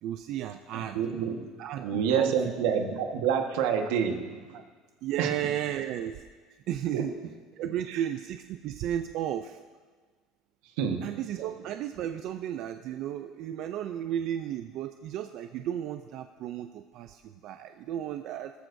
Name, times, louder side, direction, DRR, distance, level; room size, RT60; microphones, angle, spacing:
voice 1, 0.0-1.0 1.4-2.6 4.5-4.6 5.0-6.2 6.5-7.1 7.6-9.6 11.0-18.5, right 11 dB, 50° right, 8 dB, 0.4 m, -34 dB
voice 2, 0.7-1.4 1.8-4.4 5.2-5.3 6.9-7.1 10.8-11.1, right 7 dB, 80° right, 5 dB, 1.4 m, -27 dB
19.5 x 13.5 x 2.7 m, 1.5 s
cardioid pair, 165°, 0 cm